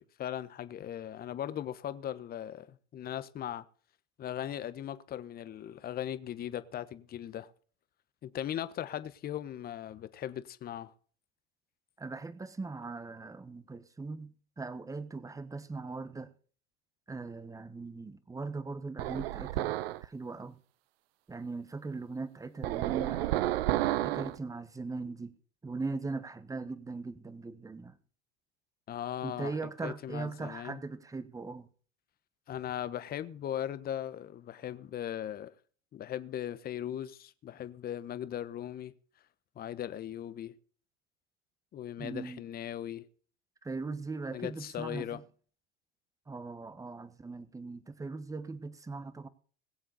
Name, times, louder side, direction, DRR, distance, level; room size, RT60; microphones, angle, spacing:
voice 1, 0.0-3.7 4.2-7.5 8.2-10.9 28.9-29.5 29.8-30.8 32.5-35.5 35.9-38.9 39.6-40.5 41.7-43.1 44.3-45.2, left 11 dB, 30° left, 1.2 m, -38 dB
voice 2, 12.0-16.3 17.1-20.6 21.3-23.6 24.0-25.3 25.6-28.0 29.2-31.7 42.0-42.4 43.6-45.2 46.3-49.3, right 3 dB, 10° right, 1.4 m, -40 dB
sound 1, 19.0-20.1 22.6-24.4, right 16 dB, 65° right, 0.9 m, -31 dB
21.5 x 7.6 x 4.1 m
hypercardioid pair, 110°, 33 cm